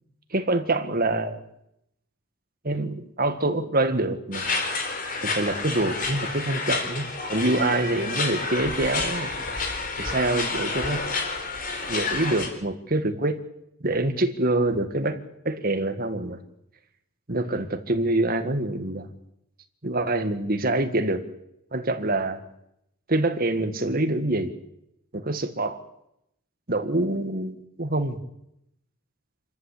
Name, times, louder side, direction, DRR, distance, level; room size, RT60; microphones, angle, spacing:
voice 1, 0.3-1.4 2.6-4.5 5.2-9.3 10.0-11.0 11.9-13.4 13.8-15.2 15.4-16.4 17.3-19.1 19.8-21.2 21.7-22.4 23.1-24.5 25.1-25.8 26.7-28.2, right 2 dB, 40° right, 8 dB, 1.8 m, -25 dB
sound 1, 4.3-12.5, left 3 dB, 40° left, 3.9 m, -29 dB
27.0 x 14.0 x 8.5 m, 0.80 s
head